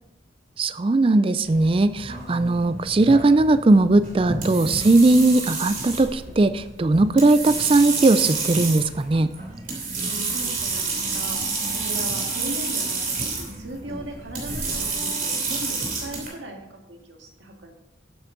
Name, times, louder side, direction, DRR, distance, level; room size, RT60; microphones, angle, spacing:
voice 1, 0.6-9.3, right 2 dB, 30° right, 12 dB, 0.4 m, -18 dB
sound 1, 1.4-16.3, right 4 dB, 45° right, 3.0 m, -29 dB
voice 2, 2.1-2.5 9.9-11.4 11.7-17.8, right 1 dB, 70° right, 2 dB, 1.9 m, -38 dB
11.5 x 8.1 x 3.9 m, 0.95 s
head